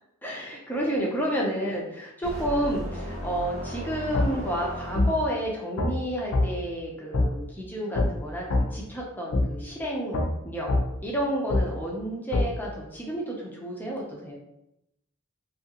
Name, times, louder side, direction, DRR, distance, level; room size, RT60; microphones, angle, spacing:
voice 1, 0.2-10.7 11.0-14.4, equal, 10° left, -3 dB, 0.5 m, -31 dB
sound 1, 2.2-5.5, equal, 20° right, 1.0 m, -36 dB
sound 2, 4.1-4.3 4.9-5.1 5.8-5.9 6.3-6.5 7.1-7.3 7.9-8.1 8.5-8.6 9.3-9.4 10.1-10.3 10.7-10.8 11.5-11.6 12.3-12.5, left 2 dB, 75° left, 0.5 m, -22 dB
2.7 x 2.5 x 2.8 m, 0.85 s
head